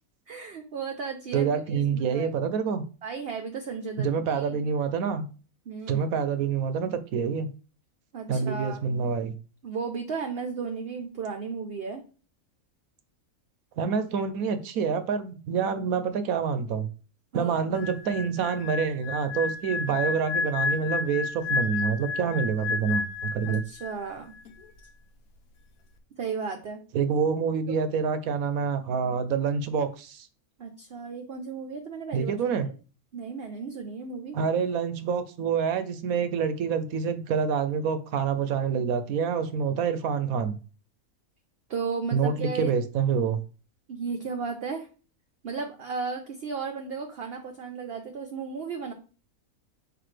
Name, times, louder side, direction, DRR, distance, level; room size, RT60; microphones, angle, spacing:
voice 1, 0.3-2.3 3.0-4.6 5.7-6.1 8.1-8.8 9.6-12.0 17.3-17.7 23.4-24.3 26.2-26.8 30.6-32.4 33.1-34.4 41.7-42.7 43.9-44.9 45.4-48.9, right 5 dB, 55° right, 0.8 m, -34 dB
voice 2, 1.3-2.8 4.0-5.3 5.9-7.5 8.3-9.4 13.8-16.9 17.3-23.6 26.9-30.3 32.1-32.7 34.3-40.6 42.1-43.4, right 6 dB, 75° right, 1.1 m, -27 dB
sound 1, 17.7-24.1 24.4-24.7, left 4 dB, 85° left, 1.3 m, -31 dB
5.9 x 4.9 x 3.3 m
omnidirectional pair, 1.5 m